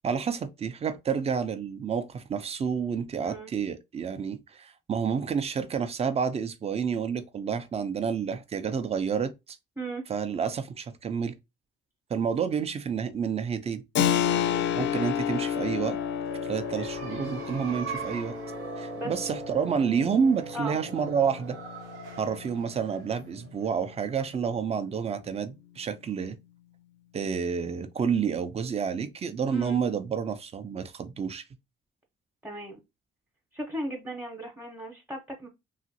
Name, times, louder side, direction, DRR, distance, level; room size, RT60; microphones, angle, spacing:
voice 1, 0.0-9.6 10.1-11.3 12.1-13.8 14.8-16.0 16.4-18.4 18.8-21.6 22.2-26.4 27.1-31.4, right 6 dB, 30° right, 0.4 m, -29 dB
Keyboard (musical), 14.0-24.3, left 9 dB, 70° left, 0.4 m, -32 dB
voice 2, 14.2-14.9 18.9-19.1 20.5-20.8 29.5-29.8 32.4-32.8 33.5-35.5, right 1 dB, 5° right, 0.8 m, -36 dB
sound 1, 14.9-24.4, right 5 dB, 90° right, 1.1 m, -41 dB
2.9 x 2.4 x 2.7 m
cardioid pair, 90°, 20 cm